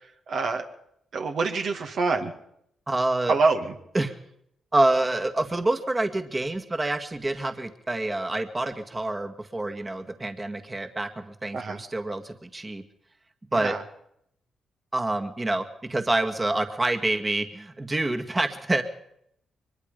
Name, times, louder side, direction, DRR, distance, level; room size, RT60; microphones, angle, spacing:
voice 1, 0.3-0.7 1.1-2.3 3.3-3.7 11.5-11.8 13.5-13.8, right 4 dB, 65° right, 4 dB, 2.1 m, -25 dB
voice 2, 2.9-3.4 3.9-4.1 4.7-12.8 13.5-13.8 14.9-18.8, right 2 dB, 25° right, 5 dB, 1.9 m, -27 dB
23.5 x 21.5 x 5.3 m, 0.74 s
supercardioid pair, 65°, 0 cm